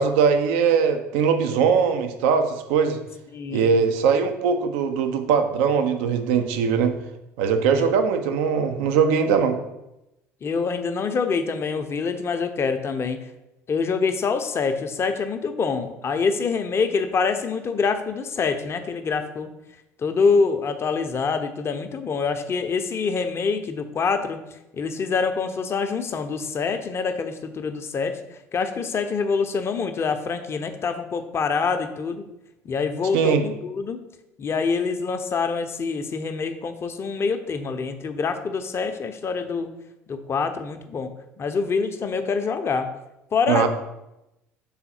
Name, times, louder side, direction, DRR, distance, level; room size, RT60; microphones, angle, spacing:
voice 1, 0.0-3.0 3.5-6.9 7.4-9.6 33.1-33.4 43.5-43.7, right 6 dB, 65° right, 7 dB, 0.6 m, -21 dB
voice 2, 3.3-3.7 7.7-7.9 10.4-13.2 13.7-19.5 20.0-24.4 24.7-32.2 32.6-34.0 34.4-39.7 40.1-41.1 41.4-42.9 43.3-43.7, left 5 dB, 35° left, 8 dB, 0.6 m, -25 dB
5.6 x 3.9 x 4.3 m, 0.91 s
figure-of-eight pair, 60°, 8 cm